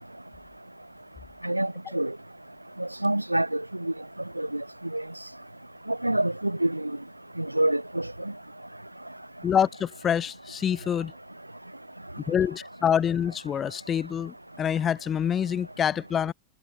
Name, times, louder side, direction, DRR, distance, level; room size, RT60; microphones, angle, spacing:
voice 1, 1.4-2.1 2.8-3.9 4.4-4.6 4.9-5.0 5.9-6.9 7.4-8.1, right 1 dB, 85° right, 4.0 m, -27 dB
voice 2, 9.4-11.1 12.3-16.3, left 8 dB, 25° left, 2.0 m, -26 dB
figure-of-eight pair, 90°, 0 cm